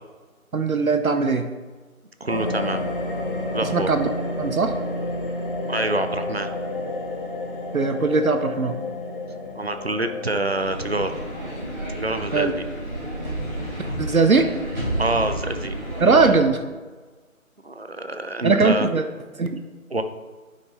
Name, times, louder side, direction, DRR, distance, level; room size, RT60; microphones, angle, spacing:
voice 1, 0.5-1.5 3.7-4.1 4.4-4.7 7.7-8.8 12.3-12.5 14.0-14.5 16.0-16.6 18.4-19.0 19.4-19.5, right 4 dB, 80° right, 8 dB, 0.8 m, -19 dB
voice 2, 2.2-2.9 3.5-3.9 5.7-6.5 9.5-11.1 12.0-12.6 15.0-15.7 17.6-18.9 19.9-20.0, right 2 dB, 45° right, 8 dB, 0.6 m, -26 dB
sound 1, 2.3-12.1, left 2 dB, 40° left, 1.0 m, -30 dB
sound 2, 10.5-16.3, right 1 dB, 15° right, 2.0 m, -31 dB
10.0 x 5.6 x 3.2 m, 1.3 s
figure-of-eight pair, 160°, 42 cm